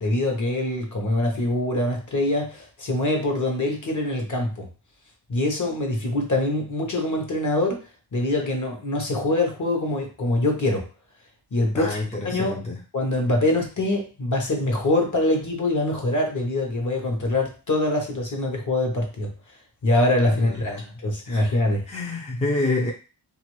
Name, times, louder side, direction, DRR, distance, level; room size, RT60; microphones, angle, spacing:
voice 1, 0.0-4.7 5.3-7.8 8.1-10.8 11.5-12.0 12.2-12.5 12.9-19.3 19.8-21.8, left 1 dB, 45° left, 2 dB, 1.0 m, -24 dB
voice 2, 11.7-12.8 20.4-20.9 21.3-21.4 21.9-22.9, left 2 dB, 15° left, -2 dB, 0.6 m, -28 dB
2.6 x 2.5 x 3.1 m, 0.35 s
cardioid pair, 70°, 42 cm